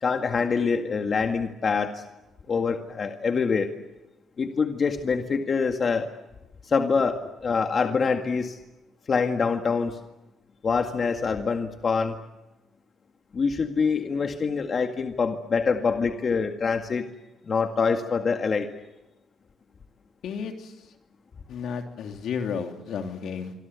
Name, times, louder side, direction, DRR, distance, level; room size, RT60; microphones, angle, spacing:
voice 1, 0.0-2.0 2.5-3.7 4.4-6.1 6.6-8.6 9.1-10.0 10.6-12.2 13.3-17.1 17.5-18.7, left 5 dB, 45° left, 5 dB, 1.9 m, -25 dB
voice 2, 20.2-20.7 21.5-23.5, left 6 dB, 70° left, 4 dB, 3.2 m, -32 dB
26.0 x 25.5 x 8.3 m, 1.0 s
cardioid pair, 85°, 0 cm